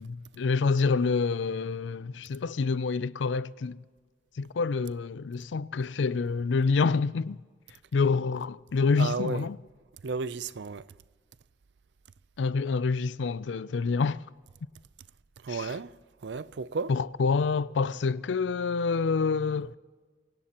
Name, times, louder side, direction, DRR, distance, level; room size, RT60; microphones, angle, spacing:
voice 1, 0.0-3.8 4.4-7.4 7.9-9.6 12.4-14.2 15.5-15.7 16.9-19.7, left 4 dB, 85° left, 0.4 m, -27 dB
voice 2, 9.0-9.5 10.0-10.9 15.4-15.9 16.2-16.9, right 4 dB, 70° right, 0.5 m, -33 dB
23.5 x 18.5 x 3.0 m
head